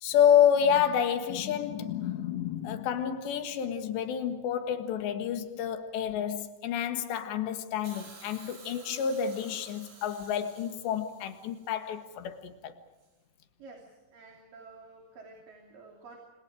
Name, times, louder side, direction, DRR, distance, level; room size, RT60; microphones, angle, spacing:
voice 1, 0.0-12.7, left 9 dB, 85° left, 3.9 m, -28 dB
Hiss, 7.8-12.0 13.0-13.1, right 4 dB, 80° right, 8.0 m, -52 dB
voice 2, 13.6-16.2, right 3 dB, 55° right, 4.3 m, -51 dB
29.5 x 26.0 x 4.9 m
omnidirectional pair, 4.9 m